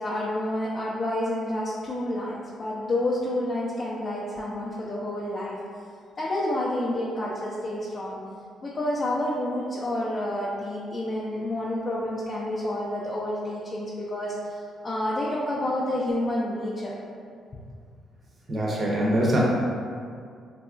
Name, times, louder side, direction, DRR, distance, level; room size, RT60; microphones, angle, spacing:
voice 1, 0.0-5.6 6.2-8.2 8.6-17.0, left 1 dB, 40° left, -6 dB, 0.3 m, -29 dB
voice 2, 18.5-19.4, right 1 dB, 40° right, -4 dB, 0.6 m, -23 dB
2.8 x 2.3 x 2.4 m, 2.2 s
cardioid pair, 90°, 0 cm